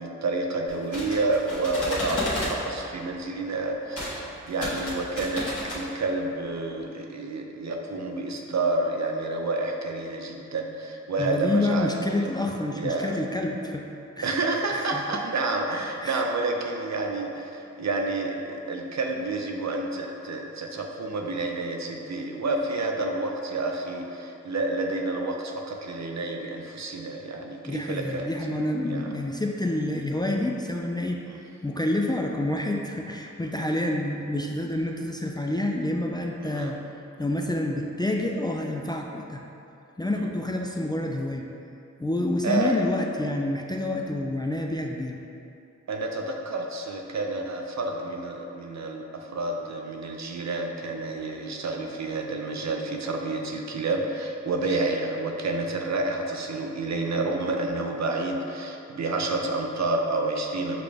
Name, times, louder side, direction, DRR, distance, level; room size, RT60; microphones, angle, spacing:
voice 1, 0.0-12.3 12.7-13.1 14.2-28.3 28.8-29.1 31.3-31.4 33.4-33.5 36.4-36.7 40.2-40.4 42.4-42.8 45.9-60.8, right 2 dB, 65° right, 2 dB, 0.5 m, -29 dB
sound 1, 0.7-2.6 3.9-4.2 4.5-5.8, equal, 50° left, 1.3 m, -32 dB
voice 2, 11.2-13.8 14.2-14.4 14.7-15.0 16.0-16.2 27.7-31.2 31.6-36.8 37.2-39.4 40.0-41.5 42.0-45.2, left 1 dB, 15° left, 0 dB, 0.3 m, -28 dB
5.9 x 2.4 x 3.3 m, 2.7 s
cardioid pair, 45°, 30 cm